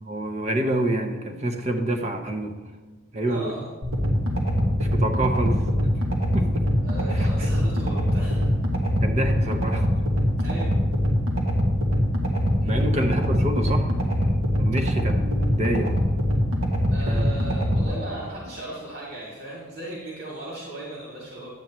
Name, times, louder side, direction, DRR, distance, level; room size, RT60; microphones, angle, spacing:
voice 1, 0.0-2.6 3.1-3.5 4.8-5.6 6.3-6.7 7.1-7.5 9.0-10.0 12.6-16.1 17.1-17.3, right 1 dB, 30° right, 5 dB, 0.7 m, -28 dB
voice 2, 3.2-3.7 6.8-8.5 10.4-10.7 12.6-13.0 16.9-21.5, right 1 dB, 55° right, -5 dB, 2.2 m, -37 dB
sound 1, 3.8-17.8, equal, 85° right, 1.6 m, -23 dB
10.5 x 8.5 x 3.1 m, 1.3 s
head